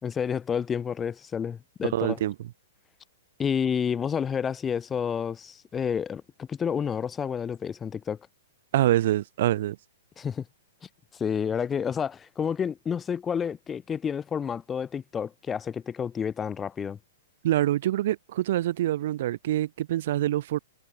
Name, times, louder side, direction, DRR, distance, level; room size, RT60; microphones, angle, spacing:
voice 1, 0.0-2.2 3.4-8.2 10.2-10.4 11.1-17.0, left 7 dB, 15° left, 5.1 m, -30 dB
voice 2, 1.9-2.3 8.7-9.8 17.4-20.6, right 13 dB, 60° right, 7.2 m, -25 dB
hypercardioid pair, 130°, 0 cm